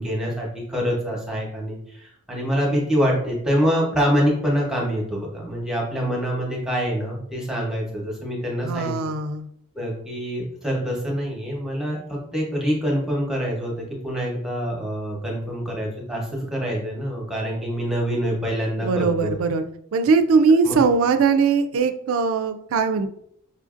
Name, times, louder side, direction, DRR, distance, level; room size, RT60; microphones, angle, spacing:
voice 1, 0.0-9.1 9.7-19.3 20.6-20.8, equal, 5° right, -3 dB, 0.8 m, -25 dB
voice 2, 8.6-9.5 18.8-19.6 19.9-23.1, right 5 dB, 70° right, 8 dB, 0.3 m, -20 dB
5.4 x 2.5 x 2.4 m, 0.71 s
head